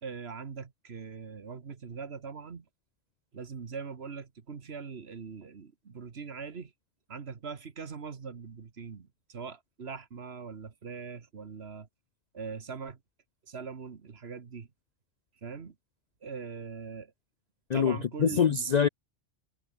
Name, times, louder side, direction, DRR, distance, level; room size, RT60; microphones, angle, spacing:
voice 1, 0.0-2.6 3.3-6.7 7.1-11.9 12.3-13.0 13.5-14.7 15.4-15.7 16.2-17.1 17.7-18.5, right 5 dB, 55° right, 1.7 m, -41 dB
voice 2, 17.7-18.9, left 7 dB, 55° left, 0.5 m, -25 dB
omnidirectional pair, 1.3 m